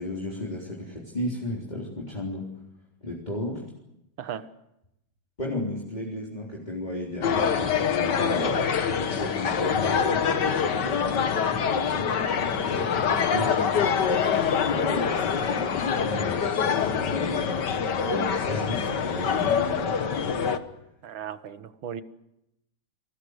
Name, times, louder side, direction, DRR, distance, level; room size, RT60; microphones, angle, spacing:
voice 1, 0.0-2.4 3.0-3.6 5.4-8.6 9.0-13.9 14.7-17.6 18.0-20.5, left 1 dB, 20° left, -2 dB, 3.9 m, -34 dB
voice 2, 4.2-4.5 21.0-22.0, right 9 dB, 80° right, 12 dB, 2.1 m, -36 dB
sound 1, 7.2-20.6, left 7 dB, 60° left, 1.9 m, -25 dB
29.5 x 20.0 x 8.1 m, 0.86 s
omnidirectional pair, 2.2 m